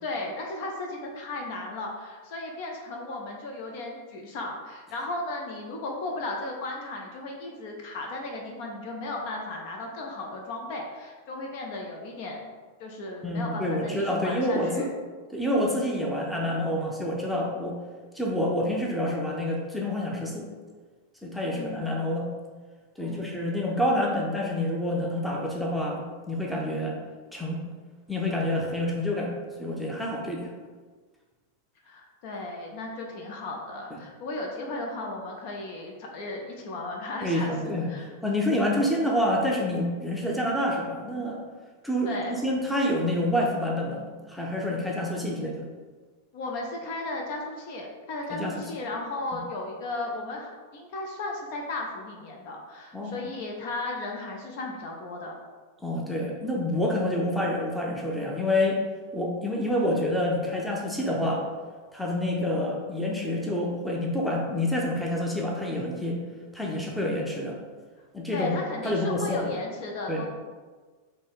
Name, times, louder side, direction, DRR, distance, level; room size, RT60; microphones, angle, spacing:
voice 1, 0.0-12.5 12.8-14.9 21.5-22.0 23.0-23.3 31.8-38.1 42.0-42.4 46.3-55.4 68.3-70.3, left 2 dB, 50° left, 1 dB, 0.6 m, -35 dB
voice 2, 13.2-14.9 15.3-17.8 18.1-20.5 21.2-22.3 23.0-27.0 27.3-27.6 28.1-30.5 37.2-37.9 38.2-41.4 41.8-44.0 44.3-45.7 48.3-48.7 52.9-53.2 55.8-58.8 59.1-61.5 61.9-66.2 66.5-67.6 68.1-68.6 68.8-69.5 70.1-70.2, left 1 dB, 5° left, -2 dB, 0.7 m, -27 dB
4.1 x 2.8 x 3.6 m, 1.4 s
figure-of-eight pair, 90°, 0 cm